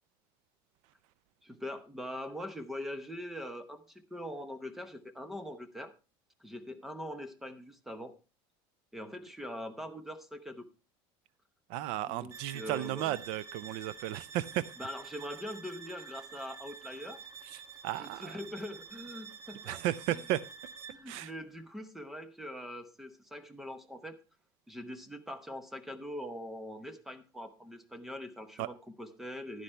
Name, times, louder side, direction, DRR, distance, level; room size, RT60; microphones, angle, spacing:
voice 1, 1.4-5.9 6.4-8.1 8.9-10.7 12.1-13.2 14.8-17.2 18.0-19.8 20.1-20.3 20.9-24.2 24.7-29.6, left 1 dB, 5° right, 0.8 m, -42 dB
voice 2, 11.7-14.6 17.5-18.4 19.7-20.4 21.1-21.3 28.6-28.7, right 14 dB, 65° right, 0.5 m, -34 dB
sound 1, 12.3-21.1, right 6 dB, 30° right, 0.9 m, -49 dB
11.0 x 10.0 x 3.2 m
cardioid pair, 170°, 10 cm